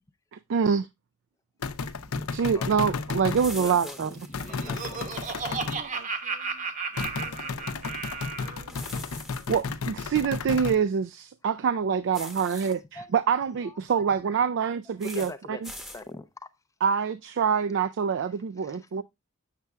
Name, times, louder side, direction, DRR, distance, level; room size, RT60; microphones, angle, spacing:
voice 1, 0.3-0.9 2.3-4.1 9.5-12.8 13.1-15.7 16.8-19.0, right 6 dB, 55° right, 0.3 m, -25 dB
sound 1, 1.6-3.4 4.3-5.8 7.0-10.8, left 4 dB, 75° left, 0.6 m, -33 dB
voice 2, 1.9-2.7 3.5-5.2 12.6-12.7 12.9-13.1 13.6-14.0 14.3-14.4 15.0-15.6 15.9-16.5 18.6-18.9, left 2 dB, 15° left, 0.4 m, -43 dB
sound 2, 3.3-5.5 8.7-9.6 12.1-12.7 15.0-15.3 15.6-16.0, left 1 dB, ahead, 0.8 m, -43 dB
Laughter, 4.2-8.6, right 5 dB, 35° right, 0.8 m, -34 dB
voice 3, 5.5-9.1, right 3 dB, 85° right, 1.3 m, -52 dB
7.4 x 6.6 x 2.2 m
head